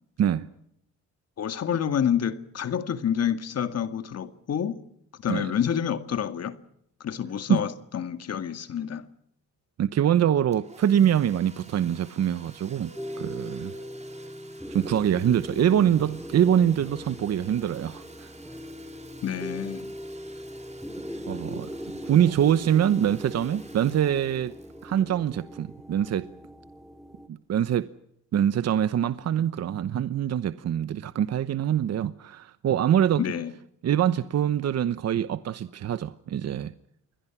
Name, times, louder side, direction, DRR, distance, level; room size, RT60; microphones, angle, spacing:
voice 1, 1.4-4.8 5.2-6.6 7.0-9.1 19.2-19.9 33.2-33.5, left 8 dB, 55° left, 2.0 m, -28 dB
voice 2, 9.8-12.9 13.2-13.7 14.7-18.3 21.3-21.7 22.0-24.5 24.8-26.3 27.3-27.9 28.3-33.2 33.8-36.7, right 10 dB, 55° right, 1.0 m, -24 dB
Domestic sounds home sounds, 10.5-26.0, right 3 dB, 20° right, 3.8 m, -51 dB
sound 1, 13.0-27.3, equal, ahead, 2.4 m, -40 dB
28.5 x 21.5 x 6.0 m
cardioid pair, 90°, 30 cm